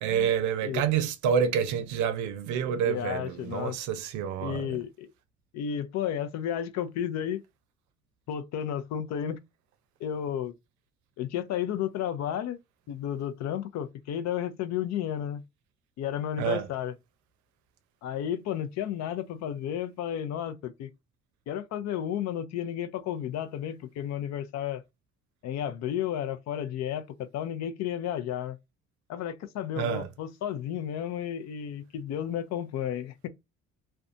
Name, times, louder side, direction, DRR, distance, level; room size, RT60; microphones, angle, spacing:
voice 1, 0.0-4.8 16.4-16.7 29.8-30.1, right 8 dB, 75° right, 0.6 m, -28 dB
voice 2, 2.9-3.8 4.4-5.1 5.5-7.4 8.3-9.4 10.0-10.5 11.2-12.6 12.9-15.4 16.0-16.9 18.0-20.9 21.5-24.8 25.4-28.6 29.1-33.3, left 10 dB, 65° left, 0.5 m, -32 dB
2.5 x 2.2 x 2.5 m
supercardioid pair, 85°, 30 cm